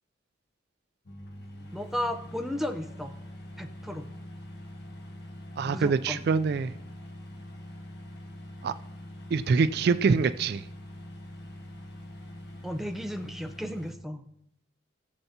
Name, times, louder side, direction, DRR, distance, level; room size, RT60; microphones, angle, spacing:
sound 1, 1.1-13.9, left 1 dB, 55° left, 1.4 m, -44 dB
voice 1, 1.7-3.1 3.6-4.0 5.6-6.2 12.6-14.2, left 1 dB, ahead, 5 dB, 0.6 m, -34 dB
voice 2, 5.6-6.7 8.6-8.7 9.3-10.6, right 5 dB, 55° right, 13 dB, 0.3 m, -25 dB
17.5 x 7.1 x 2.8 m, 0.75 s
head